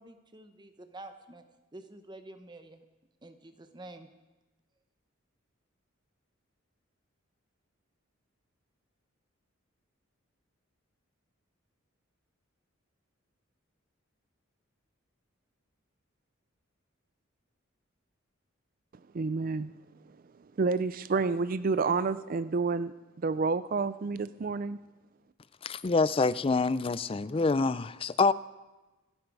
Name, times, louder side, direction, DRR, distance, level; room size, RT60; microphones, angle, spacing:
voice 1, 0.0-1.4 1.7-2.9 3.2-4.1, right 2 dB, 20° right, 0.8 m, -48 dB
voice 2, 19.1-19.7 20.6-24.8, right 4 dB, 45° right, 0.4 m, -29 dB
voice 3, 25.6-28.3, left 4 dB, 25° left, 0.4 m, -26 dB
27.0 x 9.1 x 4.8 m
head